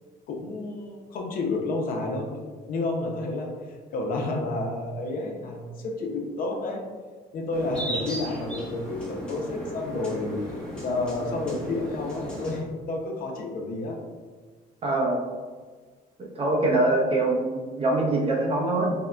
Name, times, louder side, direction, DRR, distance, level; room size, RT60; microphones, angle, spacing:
voice 1, 0.3-2.4 2.7-3.5 3.9-6.8 7.3-10.4 10.8-14.0, left 2 dB, 60° left, 2 dB, 0.5 m, -30 dB
sound 1, 7.5-12.6, equal, 5° left, 0.6 m, -35 dB
voice 2, 14.8-15.2 16.2-18.9, right 2 dB, 35° right, 0 dB, 0.6 m, -24 dB
3.6 x 2.1 x 2.2 m, 1.5 s
cardioid pair, 110°, 17 cm